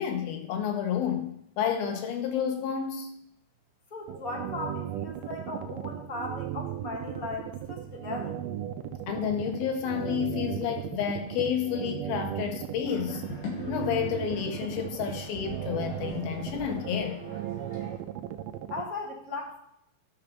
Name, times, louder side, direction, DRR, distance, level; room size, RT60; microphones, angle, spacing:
voice 1, 0.0-3.1 9.1-13.2 13.7-17.2, left 8 dB, 90° left, 3.2 m, -30 dB
voice 2, 3.9-8.4 18.7-19.6, left 3 dB, 30° left, 1.7 m, -37 dB
sound 1, 4.1-18.8, right 11 dB, 80° right, 2.1 m, -36 dB
sound 2, 12.8-18.0, left 2 dB, 65° left, 4.2 m, -44 dB
12.0 x 6.0 x 5.3 m
omnidirectional pair, 4.1 m